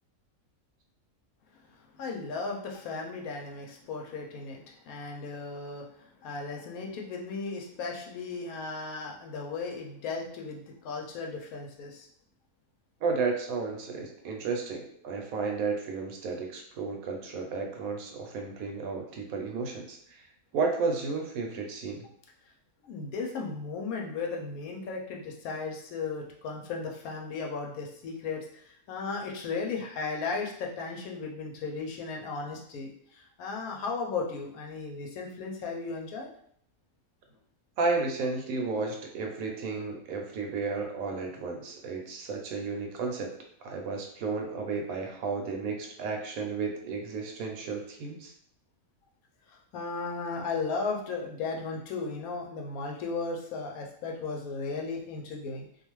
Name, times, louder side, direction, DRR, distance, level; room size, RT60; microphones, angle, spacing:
voice 1, 2.0-12.1 22.8-36.3 49.7-55.7, left 4 dB, 80° left, 0 dB, 1.0 m, -36 dB
voice 2, 13.0-20.2 20.5-22.1 37.8-43.3 43.6-48.3, right 4 dB, 75° right, 2 dB, 1.0 m, -33 dB
2.5 x 2.3 x 3.0 m, 0.65 s
omnidirectional pair, 1.5 m